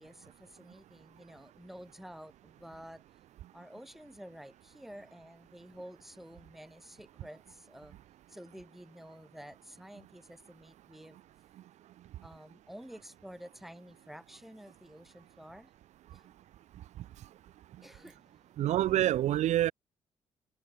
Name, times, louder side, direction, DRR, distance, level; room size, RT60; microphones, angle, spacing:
voice 1, 0.0-3.0 3.5-8.0 8.3-11.2 12.2-15.7 16.1-16.3 17.8-18.4, equal, ahead, 6.3 m, -50 dB
voice 2, 18.6-19.7, right 13 dB, 80° right, 0.7 m, -26 dB
cardioid pair, 95°, 12 cm